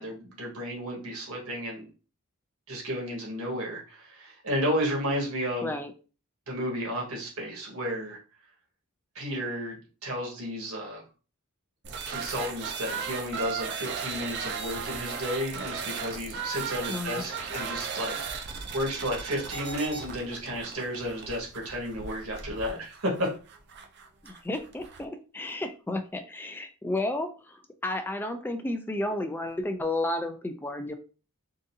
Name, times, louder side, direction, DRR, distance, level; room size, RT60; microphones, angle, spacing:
voice 1, 0.0-1.9 2.7-5.7 6.5-8.2 9.1-9.8 10.0-11.0 12.1-18.2 18.7-23.3, equal, 80° right, -1 dB, 1.4 m, -32 dB
sound 1, 11.8-25.1, right 6 dB, 50° right, 0.5 m, -36 dB
voice 2, 16.9-17.2 24.2-30.9, left 2 dB, 10° left, 7 dB, 0.3 m, -32 dB
3.7 x 2.6 x 2.6 m, 0.36 s
head